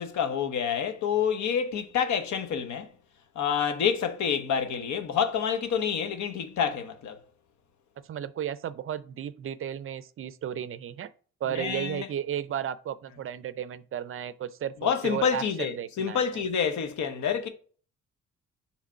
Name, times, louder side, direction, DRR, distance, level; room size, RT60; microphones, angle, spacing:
voice 1, 0.0-2.9 3.4-7.2 11.5-12.1 14.8-17.5, left 7 dB, 70° left, 1.0 m, -28 dB
voice 2, 8.0-11.1 11.4-16.4, right 10 dB, 45° right, 0.5 m, -34 dB
5.0 x 3.4 x 5.6 m
cardioid pair, 90°, 30 cm